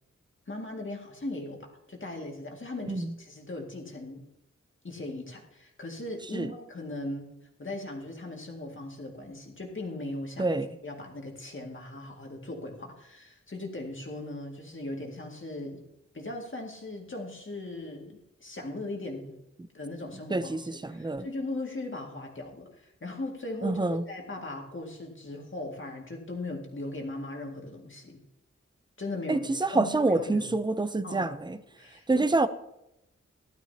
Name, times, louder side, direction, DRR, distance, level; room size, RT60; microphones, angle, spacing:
voice 1, 0.5-4.3 4.8-10.6 10.8-15.8 16.1-19.4 19.7-28.2 29.0-30.5 31.0-31.3 31.8-32.3, left 2 dB, 45° left, 2.1 m, -39 dB
voice 2, 20.3-21.3 23.6-24.0 29.3-31.6 32.1-32.5, right 2 dB, 15° right, 0.6 m, -27 dB
16.0 x 12.0 x 2.8 m
wide cardioid pair, 90°, 29 cm